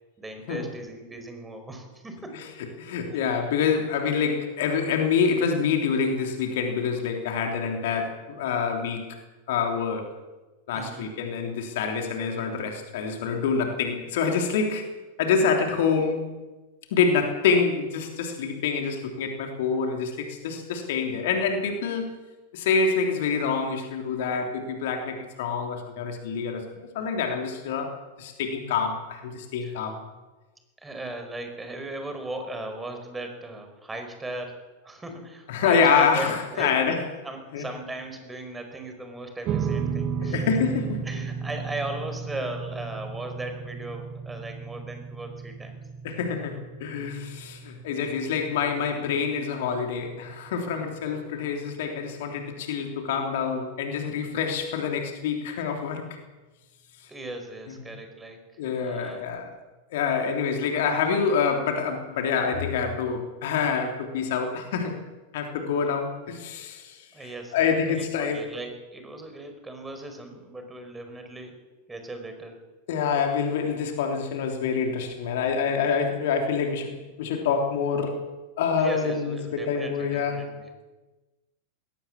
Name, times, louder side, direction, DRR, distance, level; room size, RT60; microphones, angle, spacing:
voice 1, 0.2-2.4 3.1-3.2 10.7-11.1 29.6-29.8 30.8-34.5 34.8-36.7 37.2-40.5 41.0-45.8 57.1-58.4 58.7-59.2 67.1-71.6 71.9-72.5 78.8-80.7, right 2 dB, 10° right, 6 dB, 4.9 m, -37 dB
voice 2, 2.8-9.1 9.5-10.1 10.7-14.9 15.2-16.3 16.9-22.1 22.5-27.9 28.2-30.0 35.5-37.0 37.5-37.6 40.2-41.0 46.0-56.1 57.7-57.8 58.6-59.6 59.9-65.0 65.3-68.4 72.9-78.2 78.6-80.5, left 6 dB, 55° left, 4 dB, 3.3 m, -26 dB
sound 1, 39.4-52.0, right 6 dB, 35° right, 1.4 m, -35 dB
20.5 x 18.5 x 7.4 m, 1.2 s
figure-of-eight pair, 90°, 0 cm